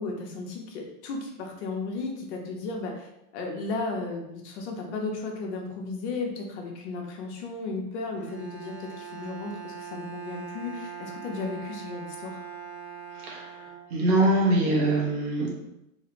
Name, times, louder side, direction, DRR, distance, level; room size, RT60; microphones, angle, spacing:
voice 1, 0.0-12.4, left 3 dB, 50° left, 1 dB, 0.7 m, -34 dB
Bowed string instrument, 8.1-14.3, right 6 dB, 25° left, 1.1 m, -42 dB
voice 2, 13.1-13.6 13.9-15.5, right 1 dB, 70° right, -2 dB, 1.2 m, -23 dB
3.1 x 2.5 x 3.0 m, 0.85 s
supercardioid pair, 155°, 45 cm